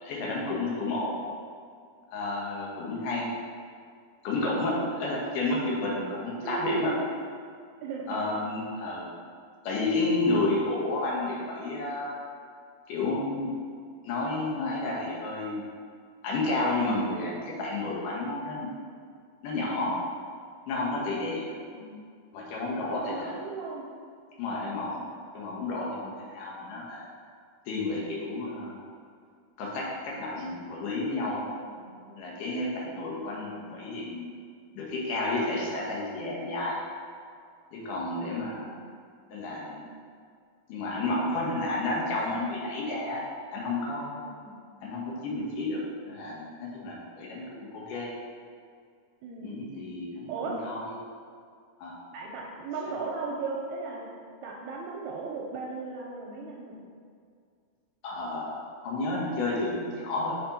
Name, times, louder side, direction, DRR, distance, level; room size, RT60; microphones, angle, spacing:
voice 1, 0.0-1.1 2.1-3.3 4.2-6.9 8.1-9.1 9.6-12.1 12.9-13.5 14.0-15.6 16.2-18.7 19.4-19.9 20.7-21.6 22.3-23.3 24.4-25.0 25.3-27.1 27.7-28.8 29.6-31.5 32.2-34.3 34.8-36.8 37.7-38.7 39.3-39.9 40.7-43.2 43.5-44.2 44.8-47.4 47.7-48.1 49.4-50.8 51.8-52.0 58.0-60.3, left 2 dB, 90° left, -4 dB, 2.6 m, -31 dB
voice 2, 4.7-5.0 6.4-7.3 7.8-8.2 21.7-22.0 22.9-23.9 31.8-32.5 38.3-39.0 44.1-44.6 49.2-49.7 50.3-50.6 52.1-54.1 54.4-56.8, right 4 dB, 80° right, -2 dB, 1.8 m, -37 dB
5.8 x 4.2 x 4.0 m, 2.2 s
omnidirectional pair, 3.5 m